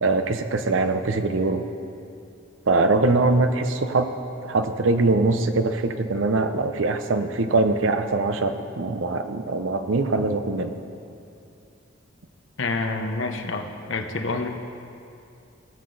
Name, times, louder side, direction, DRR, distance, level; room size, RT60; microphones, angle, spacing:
voice 1, 0.0-1.6 2.7-4.1 4.4-10.7, right 3 dB, 70° right, 8 dB, 0.7 m, -22 dB
voice 2, 12.6-14.5, left 3 dB, 70° left, 5 dB, 0.9 m, -28 dB
19.0 x 6.7 x 4.0 m, 2.6 s
head